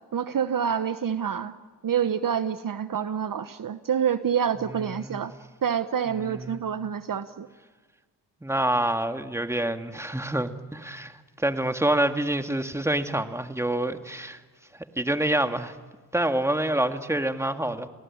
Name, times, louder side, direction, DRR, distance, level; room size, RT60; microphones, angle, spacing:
voice 1, 0.1-1.5 1.8-5.3 5.6-7.5, right 8 dB, 50° right, 12 dB, 1.1 m, -27 dB
voice 2, 6.2-6.6 8.4-14.4 15.0-15.7 16.1-17.9, right 1 dB, 5° right, 7 dB, 2.0 m, -27 dB
30.0 x 19.0 x 8.7 m, 1.4 s
supercardioid pair, 45°, 41 cm